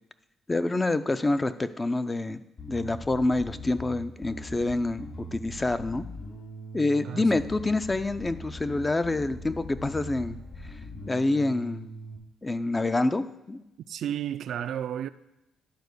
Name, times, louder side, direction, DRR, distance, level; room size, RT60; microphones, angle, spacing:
voice 1, 0.5-2.4 2.7-6.0 6.7-10.4 11.1-11.9 12.4-13.6, left 2 dB, 20° left, 0.5 m, -27 dB
Bass guitar, 2.6-12.2, equal, 50° left, 2.7 m, -41 dB
voice 2, 7.0-7.4 13.9-15.1, right 10 dB, 70° right, 0.3 m, -32 dB
10.5 x 4.4 x 6.6 m
cardioid pair, 90°, 0 cm